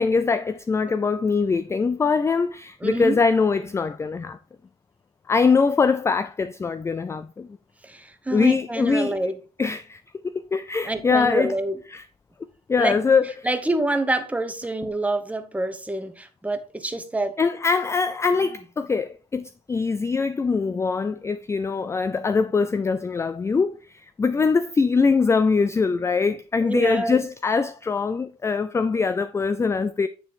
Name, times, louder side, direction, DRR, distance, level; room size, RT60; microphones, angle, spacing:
voice 1, 0.0-4.4 5.3-7.5 8.3-9.2 9.6-11.6 11.9-12.1 12.7-13.6 17.4-30.1, left 4 dB, 15° left, 0.3 m, -23 dB
voice 2, 2.8-3.2 7.8-9.3 10.8-11.8 12.8-12.9 13.4-17.3 26.6-27.2, right 2 dB, 10° right, 0.9 m, -27 dB
9.5 x 3.2 x 4.6 m
cardioid pair, 110°, 17 cm